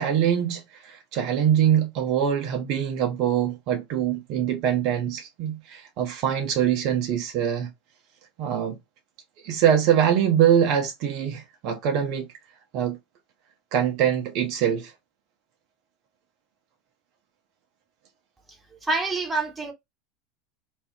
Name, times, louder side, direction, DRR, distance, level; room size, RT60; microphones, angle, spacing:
voice 1, 0.0-7.7 8.4-8.8 9.4-12.3 12.7-13.0 13.7-14.9, right 9 dB, 50° right, 0.5 m, -23 dB
voice 2, 18.8-19.7, right 3 dB, 15° right, 0.8 m, -26 dB
2.3 x 2.1 x 3.4 m
figure-of-eight pair, 80°, 0 cm